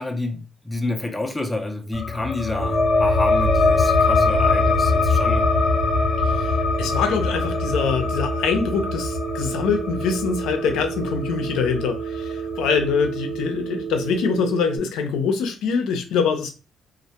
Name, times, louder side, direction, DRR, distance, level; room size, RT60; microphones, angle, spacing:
voice 1, 0.0-5.5, left 2 dB, 15° left, 0.5 m, -29 dB
sound 1, 1.9-13.1, left 3 dB, 40° left, 0.8 m, -22 dB
Telephone, 2.6-14.8, right 7 dB, 50° right, 0.7 m, -31 dB
voice 2, 6.2-16.5, left 5 dB, 90° left, 0.5 m, -24 dB
2.1 x 2.1 x 2.8 m
cardioid pair, 90°, 0 cm